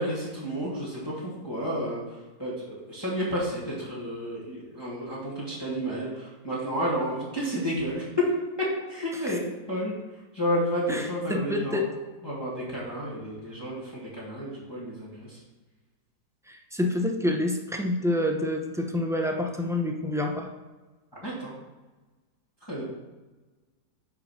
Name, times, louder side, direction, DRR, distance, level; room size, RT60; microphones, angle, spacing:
voice 1, 0.0-8.1 8.6-9.4 9.7-9.9 10.3-11.8 12.2-15.4 21.1-21.5 22.6-22.9, equal, 15° left, -7 dB, 2.0 m, -31 dB
voice 2, 11.3-11.8 16.5-20.5, left 1 dB, 5° right, 2 dB, 0.4 m, -27 dB
9.3 x 4.9 x 5.9 m, 1.2 s
omnidirectional pair, 1.7 m